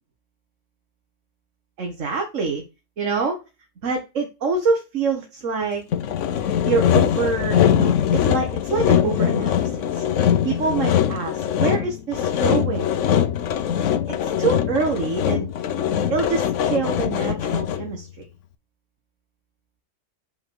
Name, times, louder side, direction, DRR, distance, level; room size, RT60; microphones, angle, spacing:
voice 1, 1.8-2.6 3.0-3.4 3.8-5.8 6.6-10.0 10.4-12.9 14.1-15.5 16.1-18.2, right 4 dB, 70° right, 3 dB, 1.7 m, -25 dB
Sawing, 5.9-18.0, left 9 dB, 70° left, 1.0 m, -22 dB
5.6 x 4.7 x 6.3 m, 0.28 s
omnidirectional pair, 1.3 m